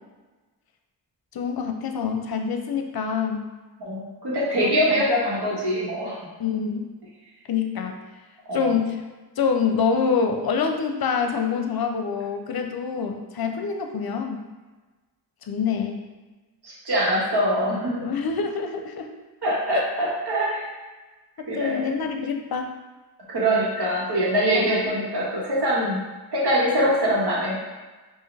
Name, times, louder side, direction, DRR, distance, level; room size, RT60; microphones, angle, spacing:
voice 1, 1.3-3.5 4.6-5.0 6.4-6.9 7.5-8.0 8.5-9.0 9.4-14.4 15.5-16.0 18.0-19.1 19.7-19.8 21.4-22.7 24.5-24.9, left 6 dB, 60° left, 5 dB, 0.6 m, -26 dB
voice 2, 3.8-6.2 8.5-8.7 16.6-18.1 19.4-20.7 21.5-21.9 23.3-26.0 26.3-27.5, equal, 70° right, -5 dB, 1.4 m, -23 dB
4.7 x 2.6 x 3.3 m, 1.2 s
cardioid pair, 50°, 42 cm